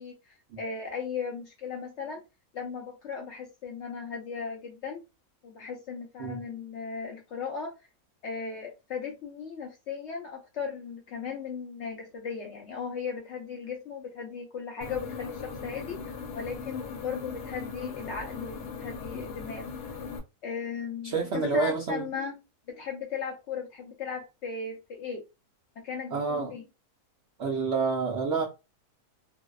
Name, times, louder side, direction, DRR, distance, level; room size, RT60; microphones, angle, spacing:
voice 1, 0.0-2.2 2.5-5.0 5.4-7.7 8.2-19.7 20.4-22.3 22.7-25.2 25.8-26.6, left 6 dB, 70° left, 0.7 m, -37 dB
sound 1, 14.8-20.2, left 5 dB, 85° left, 1.1 m, -39 dB
voice 2, 21.0-22.1 26.1-26.5 27.4-28.4, right 5 dB, 70° right, 0.6 m, -28 dB
2.6 x 2.0 x 2.2 m
omnidirectional pair, 1.6 m